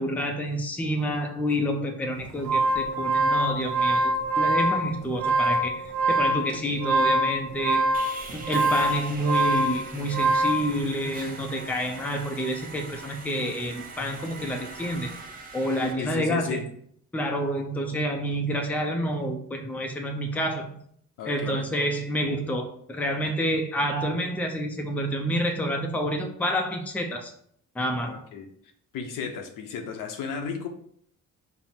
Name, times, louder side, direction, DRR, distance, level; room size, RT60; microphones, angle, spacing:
voice 1, 0.0-4.1 4.4-7.8 8.3-15.1 15.5-16.6 17.1-20.7 21.3-27.3 27.8-28.2, equal, 5° left, 3 dB, 0.4 m, -28 dB
sound 1, 2.2-10.7, right 2 dB, 80° right, 1.0 m, -24 dB
Sawing, 7.9-15.9, right 3 dB, 25° right, 0.7 m, -42 dB
voice 2, 16.0-16.7 21.2-21.6 28.0-28.5 28.9-30.7, left 6 dB, 85° left, 5 dB, 0.8 m, -34 dB
5.5 x 2.1 x 4.3 m, 0.65 s
cardioid pair, 155°, 32 cm